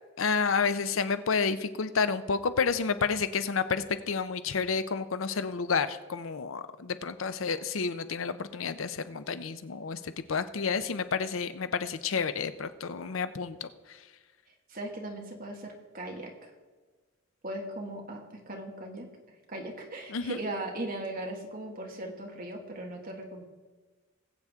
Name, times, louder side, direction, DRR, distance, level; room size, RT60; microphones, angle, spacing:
voice 1, 0.2-13.7 20.1-20.4, left 5 dB, 85° left, 12 dB, 0.7 m, -30 dB
voice 2, 14.7-16.5 17.4-19.1 19.5-23.4, right 1 dB, 45° right, 1 dB, 1.9 m, -38 dB
20.0 x 8.1 x 3.6 m, 1.4 s
head